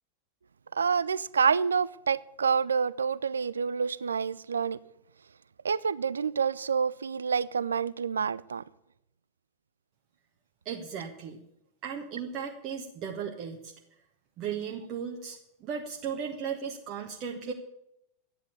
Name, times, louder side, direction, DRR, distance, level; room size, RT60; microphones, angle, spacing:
voice 1, 0.7-4.8 5.6-8.6, right 6 dB, 70° right, 0.4 m, -28 dB
voice 2, 10.6-11.4 11.8-13.7 14.4-17.5, right 7 dB, 40° right, 1.4 m, -36 dB
12.0 x 10.0 x 8.4 m
figure-of-eight pair, 90°, 0 cm